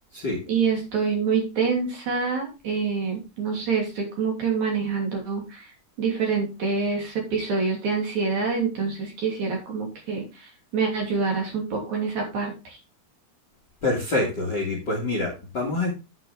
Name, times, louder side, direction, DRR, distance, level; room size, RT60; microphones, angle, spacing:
voice 1, 0.5-5.7 6.0-12.8, right 5 dB, 50° right, 1 dB, 4.2 m, -26 dB
voice 2, 13.8-15.9, left 2 dB, 35° left, 1 dB, 2.0 m, -26 dB
9.0 x 8.9 x 3.4 m, 0.27 s
omnidirectional pair, 4.4 m